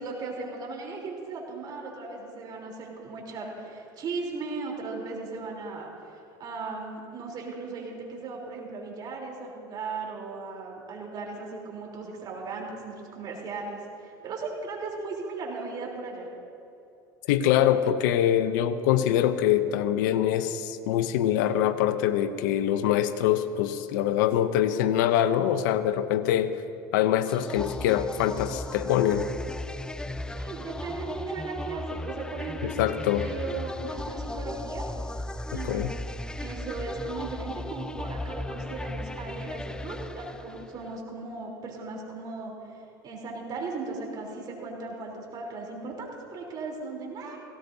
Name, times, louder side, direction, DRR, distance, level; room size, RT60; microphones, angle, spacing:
voice 1, 0.0-16.3 30.3-34.9 35.5-35.8 36.4-47.4, right 3 dB, 40° right, -1 dB, 3.5 m, -37 dB
voice 2, 17.3-26.5 26.9-29.3 32.6-33.3 35.5-35.9, left 11 dB, 80° left, 12 dB, 0.7 m, -24 dB
sound 1, 27.3-40.9, left 1 dB, 10° left, 0.4 m, -36 dB
18.0 x 17.0 x 2.7 m, 2.7 s
supercardioid pair, 105°, 10 cm